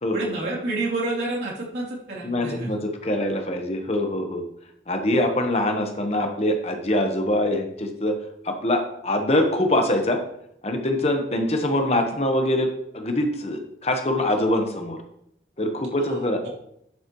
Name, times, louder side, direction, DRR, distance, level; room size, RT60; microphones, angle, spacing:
voice 1, 0.1-2.7 16.1-16.5, right 2 dB, 75° right, -5 dB, 3.0 m, -29 dB
voice 2, 2.2-4.4 4.9-8.1 8.4-10.2 10.6-15.0 15.6-16.5, left 1 dB, 35° left, 4 dB, 1.1 m, -24 dB
10.5 x 7.4 x 3.1 m, 0.76 s
head